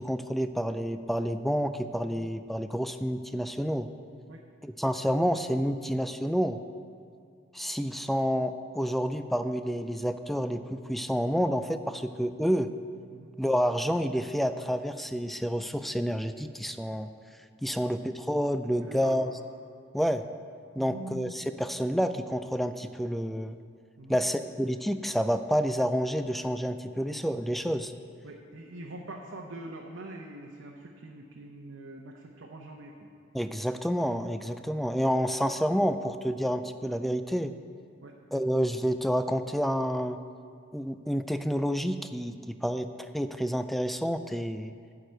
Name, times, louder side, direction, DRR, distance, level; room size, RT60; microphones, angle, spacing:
voice 1, 0.0-3.9 4.6-6.6 7.5-12.7 13.4-17.1 17.6-19.3 19.9-20.2 20.8-23.6 24.1-27.9 33.3-37.5 38.3-40.2 40.7-44.7, equal, ahead, 10 dB, 0.3 m, -29 dB
voice 2, 18.8-19.2 20.8-21.4 24.0-24.3 28.2-33.1 38.0-38.2, right 1 dB, 80° right, 0 dB, 0.8 m, -44 dB
11.5 x 4.8 x 7.6 m, 2.3 s
head